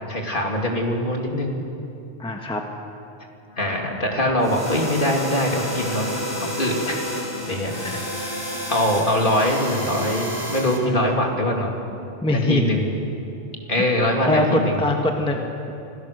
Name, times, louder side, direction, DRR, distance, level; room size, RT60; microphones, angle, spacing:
voice 1, 0.1-1.6 3.6-6.1 6.4-6.9 7.4-8.0 8.7-11.8 12.3-12.8 13.7-14.8, left 1 dB, 45° left, 1 dB, 2.8 m, -23 dB
voice 2, 2.2-2.6 7.8-8.0 12.2-12.6 14.2-15.7, left 1 dB, 5° left, 2 dB, 1.3 m, -22 dB
sound 1, 3.4-14.4, left 3 dB, 85° left, 1.8 m, -40 dB
sound 2, 4.4-10.8, equal, 20° left, 3.9 m, -31 dB
26.0 x 17.5 x 6.7 m, 2.7 s
omnidirectional pair, 1.2 m